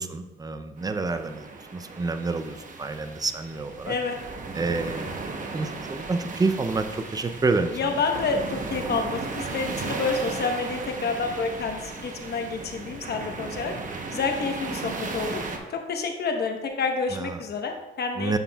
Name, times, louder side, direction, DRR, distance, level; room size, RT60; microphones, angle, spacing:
voice 1, 0.0-4.0 4.5-8.0 17.1-17.4 18.2-18.4, right 3 dB, 20° right, 9 dB, 0.5 m, -29 dB
sound 1, 0.8-15.6, right 3 dB, 40° right, 0.9 m, -36 dB
voice 2, 3.8-4.2 7.7-13.7 14.1-15.4 15.7-18.4, left 4 dB, 55° left, 4 dB, 1.0 m, -28 dB
9.1 x 6.0 x 2.3 m, 1.1 s
cardioid pair, 90°, 20 cm